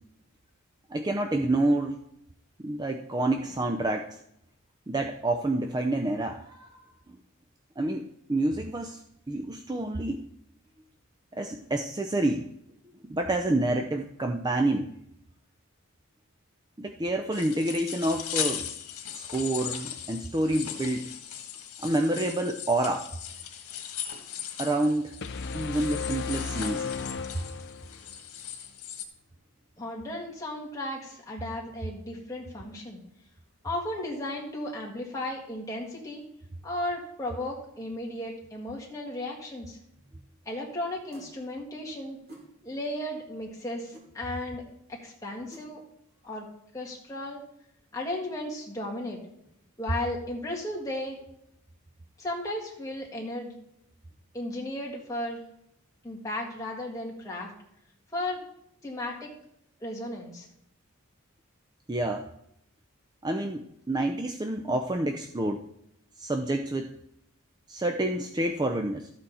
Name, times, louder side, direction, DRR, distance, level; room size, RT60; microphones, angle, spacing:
voice 1, 0.9-2.0 2.6-4.2 4.9-6.8 7.1-7.2 7.8-9.0 9.3-10.2 11.3-12.5 13.0-14.9 16.8-18.7 19.1-21.1 21.8-23.1 24.6-25.2 25.5-26.9 61.9-62.3 63.2-65.6 66.2-66.9 67.7-69.1, right 1 dB, 20° right, 5 dB, 0.4 m, -28 dB
sound 1, 17.3-29.0, left 9 dB, 90° left, 1.5 m, -38 dB
sound 2, 25.2-28.1, left 5 dB, 50° left, 0.5 m, -35 dB
voice 2, 29.8-33.0 33.6-36.2 36.6-39.8 40.5-42.2 42.6-45.8 46.2-46.5 46.7-47.4 47.9-49.2 49.8-51.2 52.2-53.5 54.3-55.4 56.0-57.5 58.1-58.4 58.8-59.3 59.8-60.5, left 1 dB, 15° left, -3 dB, 2.1 m, -35 dB
sound 3, 41.1-41.3 42.3-42.5 43.9-44.1 45.5-45.7, right 1 dB, 45° right, 2.9 m, -47 dB
13.0 x 7.7 x 4.2 m, 0.76 s
head